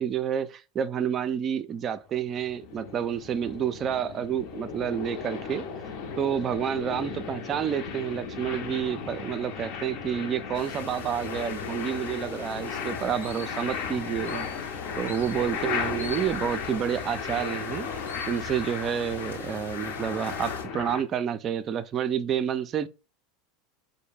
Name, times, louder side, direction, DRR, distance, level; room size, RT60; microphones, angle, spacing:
voice 1, 0.0-5.7 6.2-14.5 15.0-22.9, right 8 dB, 35° right, 0.4 m, -29 dB
sound 1, 2.1-21.0, left 6 dB, 50° left, 0.6 m, -35 dB
sound 2, 10.5-20.7, left 3 dB, 75° left, 0.9 m, -43 dB
4.4 x 2.1 x 3.3 m
figure-of-eight pair, 80°, 0 cm